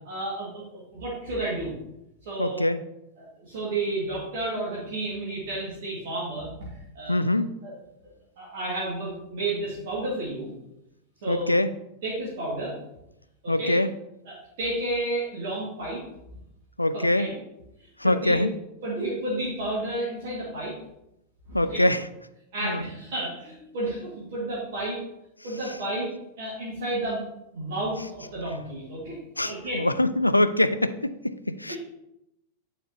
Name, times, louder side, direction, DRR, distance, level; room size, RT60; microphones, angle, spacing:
voice 1, 0.1-1.7 2.2-2.7 3.2-7.2 7.6-7.7 8.4-10.5 11.2-11.6 12.0-12.7 13.4-13.8 14.3-16.0 16.9-17.3 17.8-18.4 18.8-20.7 21.5-21.8 22.5-25.0 25.4-26.1 26.4-27.2 27.5-29.2 29.4-29.8 31.7-31.8, right 2 dB, 55° right, -7 dB, 2.0 m, -31 dB
voice 2, 2.4-2.8 7.1-7.5 11.3-11.7 13.5-13.9 16.8-17.3 18.0-18.5 21.5-22.1 22.6-22.8 25.6-25.8 29.4-31.8, left 1 dB, 85° left, 12 dB, 0.3 m, -24 dB
8.8 x 4.4 x 2.9 m, 0.85 s
figure-of-eight pair, 90°, 0 cm